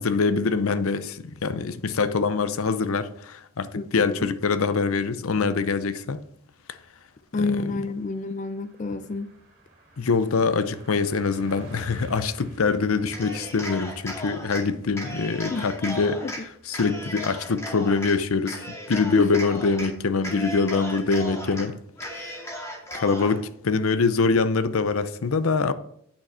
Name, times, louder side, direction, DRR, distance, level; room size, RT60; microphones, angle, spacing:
voice 1, 0.0-6.2 6.7-6.8 7.3-7.9 10.0-22.4 22.9-25.7, left 4 dB, 80° left, 0.6 m, -24 dB
voice 2, 3.7-4.3 7.3-9.3 15.5-15.7 16.2-16.3 19.1-19.4, left 3 dB, 35° left, 0.4 m, -28 dB
Car passing by, 6.3-20.5, right 1 dB, 50° right, 3.1 m, -51 dB
Cheering, 13.1-14.6 15.0-16.4 16.7-18.1 18.5-19.9 20.2-21.6 22.0-23.4, equal, 15° left, 2.3 m, -36 dB
8.8 x 6.6 x 5.5 m
head